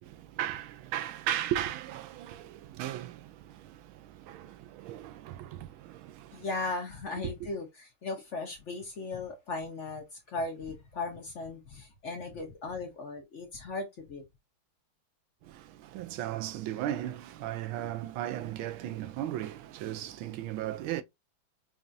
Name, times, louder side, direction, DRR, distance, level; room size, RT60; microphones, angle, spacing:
voice 1, 0.0-6.5 7.2-7.5 15.4-21.0, right 12 dB, 80° right, 1.4 m, -36 dB
voice 2, 6.3-14.2, left 3 dB, 60° left, 0.7 m, -37 dB
5.3 x 2.4 x 2.5 m
omnidirectional pair, 2.3 m